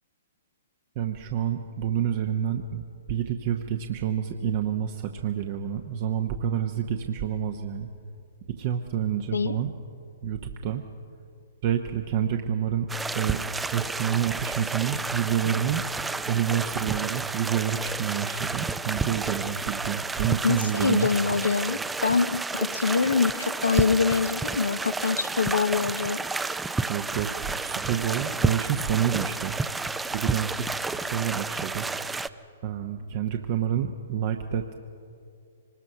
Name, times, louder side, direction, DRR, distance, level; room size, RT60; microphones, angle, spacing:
voice 1, 1.0-7.9 8.6-9.7 10.2-10.8 11.6-12.9 13.1-13.4 13.7-15.8 16.3-21.1 26.9-29.6 30.1-31.9 32.6-34.7, right 9 dB, 50° right, 5 dB, 1.0 m, -28 dB
sound 1, 12.9-32.3, right 3 dB, 10° right, 0.5 m, -31 dB
voice 2, 20.4-26.2, left 5 dB, 85° left, 12 dB, 0.7 m, -25 dB
24.5 x 20.5 x 5.7 m, 2.4 s
hypercardioid pair, 125°, 0 cm